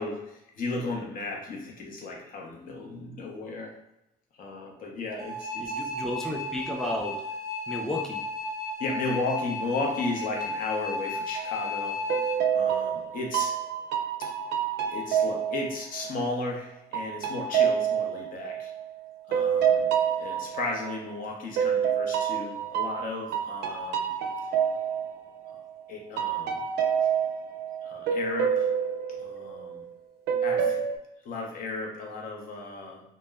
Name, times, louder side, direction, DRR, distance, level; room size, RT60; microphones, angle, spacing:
voice 1, 0.0-3.7 4.3-5.8 8.8-12.0 12.5-13.6 14.2-14.3 14.9-18.7 19.3-19.9 20.2-24.1 25.9-26.6 27.8-28.7 29.2-29.8 30.4-30.8 31.2-33.0, left 3 dB, 55° left, 0 dB, 0.7 m, -34 dB
sound 1, 5.2-12.4, left 2 dB, 20° right, 0.8 m, -34 dB
voice 2, 5.6-7.2 7.7-8.2, left 1 dB, 5° left, 0 dB, 0.4 m, -32 dB
sound 2, 11.4-11.7 12.1-16.4 16.9-21.1 21.6-25.8 26.2-29.9 30.3-31.0, right 8 dB, 80° right, 0.4 m, -28 dB
2.1 x 2.0 x 3.4 m, 0.85 s
cardioid pair, 110°, 17 cm